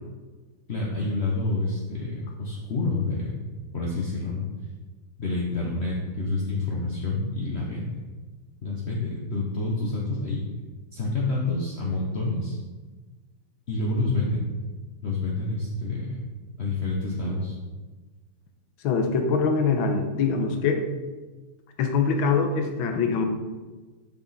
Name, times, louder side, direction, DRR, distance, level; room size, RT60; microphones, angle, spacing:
voice 1, 0.7-3.5 3.7-4.5 5.2-7.9 8.6-10.5 10.9-12.6 13.7-14.5 15.0-16.2 16.6-17.6, left 2 dB, 50° left, -3 dB, 0.8 m, -28 dB
voice 2, 18.8-20.8 21.8-23.3, left 5 dB, 70° left, 5 dB, 1.5 m, -23 dB
7.3 x 6.1 x 4.1 m, 1.3 s
omnidirectional pair, 2.4 m